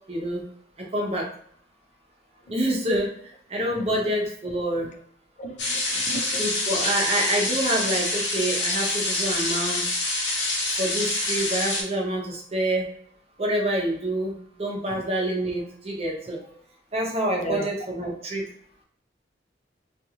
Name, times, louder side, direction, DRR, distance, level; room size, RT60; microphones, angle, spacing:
voice 1, 0.1-0.5 0.8-1.3 2.5-3.1 3.5-4.9 6.4-10.0 10.7-12.9 13.4-16.4 16.9-18.5, right 1 dB, 35° right, -1 dB, 0.7 m, -27 dB
voice 2, 5.4-6.4 17.4-17.7, equal, 40° left, 4 dB, 0.3 m, -34 dB
sound 1, 5.6-11.8, left 2 dB, 80° left, 0.9 m, -26 dB
2.5 x 2.4 x 2.8 m, 0.65 s
head